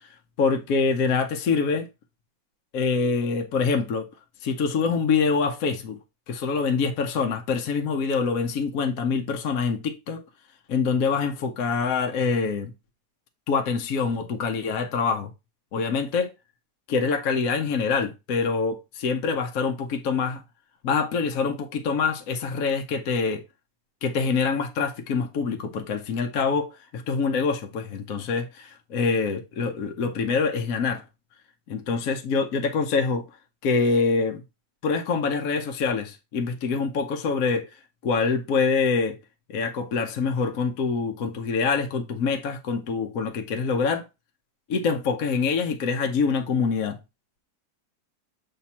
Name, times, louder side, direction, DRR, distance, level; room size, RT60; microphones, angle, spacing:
voice 1, 0.4-1.9 2.7-4.0 4.4-6.0 6.3-10.2 10.7-12.7 13.5-15.3 15.7-16.3 16.9-20.4 20.8-23.4 24.0-31.0 31.7-33.2 33.6-34.4 34.8-37.7 38.0-39.2 39.5-44.1 44.7-47.0, left 5 dB, 60° left, 1.1 m, -25 dB
7.2 x 3.4 x 4.1 m
omnidirectional pair, 2.0 m